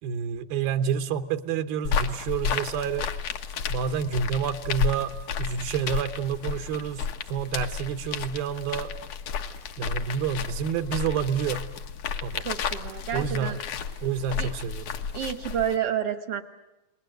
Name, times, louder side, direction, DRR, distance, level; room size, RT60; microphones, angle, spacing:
voice 1, 0.0-3.1 3.7-8.9 9.8-11.7 12.2-12.5 13.1-13.6 14.0-14.9, right 7 dB, 85° right, 8 dB, 2.9 m, -29 dB
sound 1, 1.8-15.8, left 6 dB, 60° left, 2.5 m, -32 dB
voice 2, 12.4-13.6 14.4-14.5 15.1-16.4, right 9 dB, 60° right, 10 dB, 1.6 m, -29 dB
30.0 x 21.0 x 7.9 m, 1.0 s
omnidirectional pair, 4.2 m